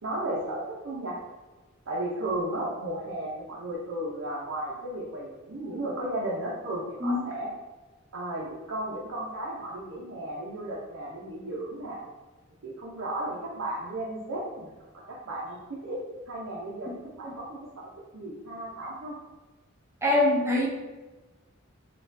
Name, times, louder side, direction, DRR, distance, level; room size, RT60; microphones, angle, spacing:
voice 1, 0.0-1.2 1.9-7.5 8.1-12.0 12.6-14.7 14.9-16.0 16.3-16.9 17.2-19.2, right 1 dB, 75° right, -5 dB, 0.6 m, -34 dB
voice 2, 20.0-20.7, left 2 dB, 15° right, -3 dB, 0.4 m, -23 dB
4.1 x 2.4 x 2.6 m, 1.2 s
head